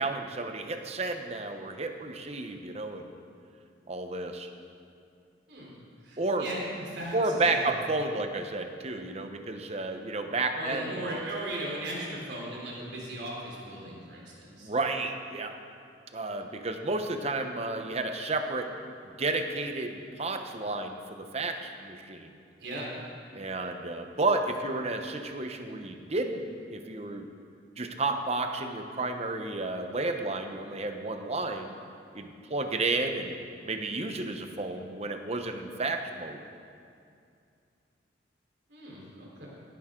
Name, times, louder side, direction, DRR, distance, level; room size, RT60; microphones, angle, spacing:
voice 1, 0.0-3.1 3.9-4.5 6.2-6.5 7.1-11.2 14.5-15.6 16.1-18.7 19.2-22.3 23.3-27.3 27.8-31.7 32.1-33.4 33.6-36.4, right 2 dB, 35° right, 6 dB, 0.9 m, -32 dB
voice 2, 6.0-7.7 10.5-14.7 22.6-23.0 38.7-39.5, right 1 dB, 65° right, -4 dB, 3.7 m, -38 dB
17.5 x 10.5 x 3.8 m, 2.4 s
head